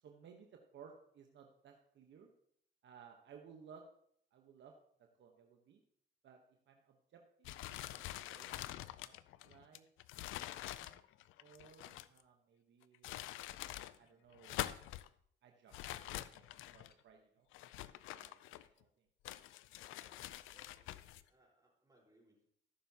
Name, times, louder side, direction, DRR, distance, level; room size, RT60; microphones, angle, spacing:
voice 1, 0.0-2.3 2.8-3.9 4.3-4.7 5.0-5.8 6.2-6.4 6.7-9.9 10.2-10.4 10.6-11.0 11.4-13.3 14.0-14.6 15.4-17.5 17.7-17.8 18.1-19.1, right 6 dB, 65° right, 3 dB, 1.1 m, -60 dB
sound 1, 7.4-12.2 12.8-13.9 14.3-15.1 15.7-16.9 17.5-18.8 19.2-21.2, left 14 dB, 90° left, 0.4 m, -46 dB
sound 2, 11.8-12.2 16.8-17.0, left 5 dB, 50° left, 1.0 m, -71 dB
voice 2, 19.8-22.5, equal, 15° right, -3 dB, 4.4 m, -71 dB
14.0 x 6.9 x 2.9 m, 0.66 s
cardioid pair, 90°, 20 cm